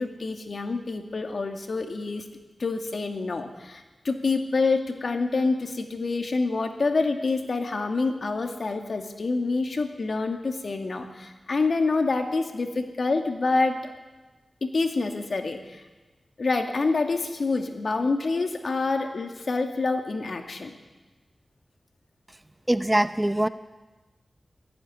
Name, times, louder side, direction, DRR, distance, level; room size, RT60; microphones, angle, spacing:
voice 1, 0.0-2.2 2.6-13.9 14.6-15.8 16.4-20.8, left 3 dB, 65° left, 5 dB, 2.3 m, -27 dB
voice 2, 22.7-23.5, right 1 dB, 15° right, 12 dB, 0.8 m, -22 dB
18.0 x 15.0 x 9.8 m, 1.2 s
wide cardioid pair, 65°, 0 cm